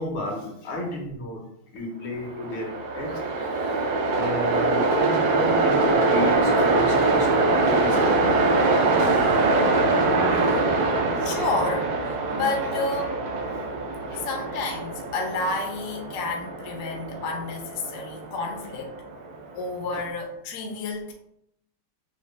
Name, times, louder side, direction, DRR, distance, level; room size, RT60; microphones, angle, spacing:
voice 1, 0.0-1.4 1.7-8.4 10.8-10.9 14.1-14.3 19.9-20.0, left 1 dB, 80° left, 0 dB, 1.8 m, -33 dB
Train, 2.2-19.4, right 3 dB, 70° right, 0.9 m, -23 dB
voice 2, 10.3-10.7 11.2-13.2 14.2-18.9 19.5-21.1, left 3 dB, 60° left, 2 dB, 0.8 m, -30 dB
6.0 x 2.2 x 3.2 m, 0.76 s
omnidirectional pair, 2.3 m